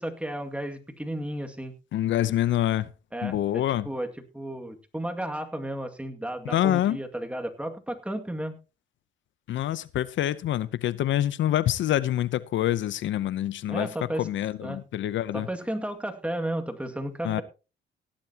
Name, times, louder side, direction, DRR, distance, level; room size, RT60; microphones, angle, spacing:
voice 1, 0.0-1.7 3.1-4.1 4.3-8.6 13.7-14.3 14.6-14.8 15.3-17.4, right 1 dB, 5° right, 2.2 m, -33 dB
voice 2, 1.9-2.9 3.2-3.9 6.5-7.0 9.5-13.9 14.2-15.5 17.2-17.4, left 12 dB, 75° left, 0.7 m, -26 dB
17.0 x 11.5 x 2.9 m
cardioid pair, 90°, 20 cm